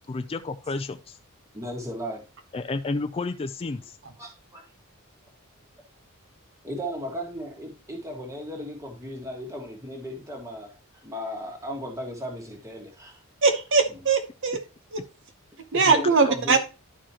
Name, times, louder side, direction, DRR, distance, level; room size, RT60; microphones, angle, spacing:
voice 1, 0.1-1.2 2.5-4.0, left 3 dB, 25° left, 8 dB, 0.4 m, -31 dB
voice 2, 1.5-2.2 4.2-4.6 6.6-10.7 11.0-13.2 13.9-14.0 15.8-16.6, equal, 15° right, 0 dB, 1.6 m, -36 dB
voice 3, 13.4-14.6 14.9-15.0 15.7-16.6, right 4 dB, 55° right, 5 dB, 0.8 m, -21 dB
11.5 x 4.8 x 2.9 m, 0.29 s
head